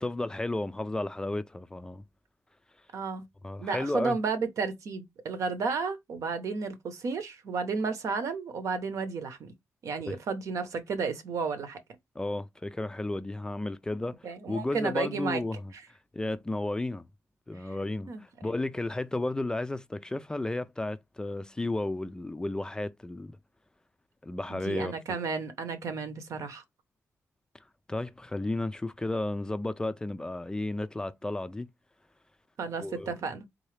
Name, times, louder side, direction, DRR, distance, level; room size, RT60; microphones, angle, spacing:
voice 1, 0.0-2.0 3.4-4.2 10.1-10.2 12.2-15.7 16.1-17.0 17.5-23.4 24.2-25.0 27.5-31.7 32.8-33.1, left 2 dB, 15° left, 0.3 m, -33 dB
voice 2, 2.9-3.2 3.6-9.5 9.8-11.8 14.2-15.4 18.1-18.2 24.5-26.6 32.6-33.5, right 4 dB, 70° right, 0.9 m, -32 dB
3.8 x 2.7 x 3.2 m
cardioid pair, 100°, 6 cm